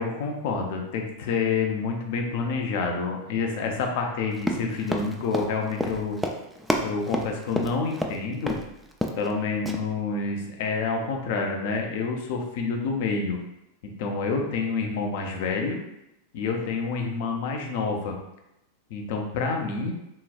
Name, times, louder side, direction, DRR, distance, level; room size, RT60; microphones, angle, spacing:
voice 1, 0.0-6.2 6.8-8.6 9.2-13.4 13.8-15.8 16.3-18.2 18.9-19.9, left 4 dB, 50° left, 2 dB, 0.6 m, -28 dB
Run, 4.4-8.2 8.5-8.6 8.9-9.3 9.7-9.8, equal, ahead, 0.4 m, -29 dB
3.7 x 3.0 x 2.4 m, 0.86 s
figure-of-eight pair, 90°, 0 cm